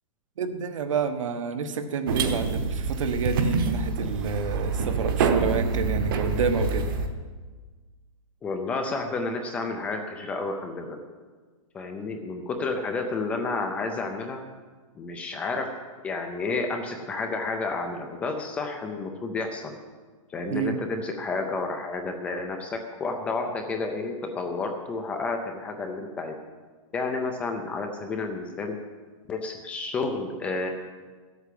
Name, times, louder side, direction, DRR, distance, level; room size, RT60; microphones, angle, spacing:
voice 1, 0.4-6.9 20.5-20.8, right 5 dB, 65° right, 8 dB, 1.3 m, -29 dB
sound 1, 2.1-7.1, right 4 dB, 40° right, 1.1 m, -26 dB
voice 2, 8.4-11.0 11.7-14.4 15.0-19.8 20.3-26.3 26.9-28.8 29.3-30.7, left 3 dB, 5° left, 4 dB, 0.5 m, -31 dB
13.0 x 8.2 x 7.6 m, 1.4 s
hypercardioid pair, 180°, 17 cm